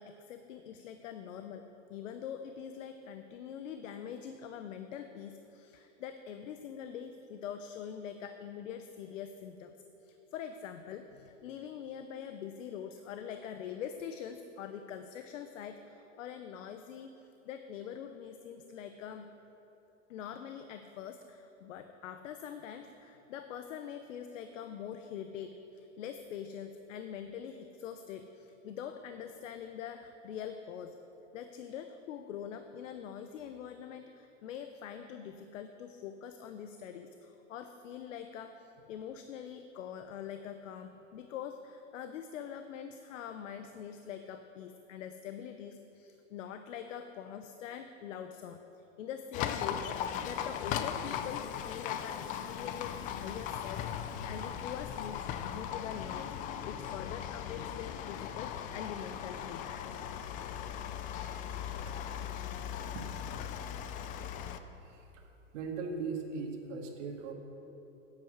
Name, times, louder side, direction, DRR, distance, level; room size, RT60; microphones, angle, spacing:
voice 1, 0.0-9.7 10.0-17.1 17.4-19.3 20.1-31.0 31.3-56.4 56.6-59.7, left 8 dB, 75° left, 8 dB, 0.8 m, -44 dB
Livestock farm animals working animals, 49.3-64.6, left 9 dB, 25° left, 0.3 m, -38 dB
voice 2, 61.6-61.9 62.9-63.1 64.8-65.2 65.5-67.3, right 4 dB, 65° right, 2 dB, 2.0 m, -39 dB
10.5 x 8.2 x 6.5 m, 3.0 s
hypercardioid pair, 125°, 38 cm